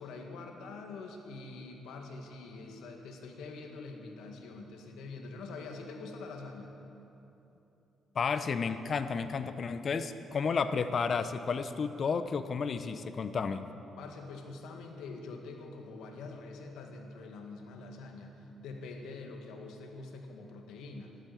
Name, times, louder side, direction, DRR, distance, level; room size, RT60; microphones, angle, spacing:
voice 1, 0.0-6.7 14.0-21.2, left 3 dB, 85° left, 3 dB, 1.9 m, -45 dB
voice 2, 8.1-13.7, left 5 dB, 50° left, 11 dB, 0.8 m, -32 dB
13.5 x 12.0 x 7.9 m, 3.0 s
cardioid pair, 90°, 0 cm